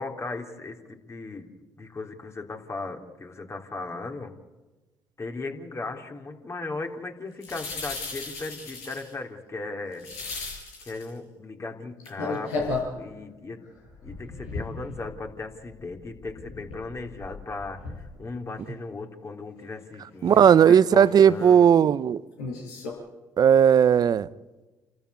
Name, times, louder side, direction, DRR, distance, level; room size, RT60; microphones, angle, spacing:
voice 1, 0.0-4.3 5.2-10.1 10.9-13.6 14.0-21.8, left 3 dB, 35° left, 3.7 m, -37 dB
sound 1, 7.4-9.1 9.9-11.1 12.0-12.9 13.6-15.4 15.6-18.2 18.6-18.7 20.3-20.5 20.9-21.4 22.4-22.9, left 3 dB, 90° left, 6.1 m, -35 dB
voice 2, 20.2-22.2 23.4-24.3, right 8 dB, 55° right, 0.8 m, -17 dB
29.5 x 14.0 x 8.4 m
hypercardioid pair, 50°, 8 cm